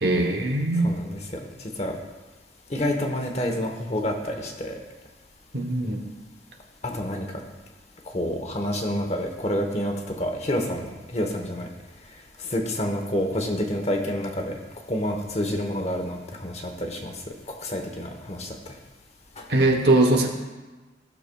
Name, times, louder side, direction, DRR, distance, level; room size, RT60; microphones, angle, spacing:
voice 1, 0.0-0.9 5.5-6.1 19.5-20.3, right 2 dB, 60° right, 3 dB, 1.0 m, -21 dB
voice 2, 0.8-1.9 2.7-4.8 6.8-7.3 8.1-11.7 12.4-14.5 14.9-17.1 17.6-18.6 19.4-19.5, left 1 dB, 35° left, 3 dB, 1.0 m, -28 dB
15.0 x 6.6 x 2.3 m, 1.2 s
head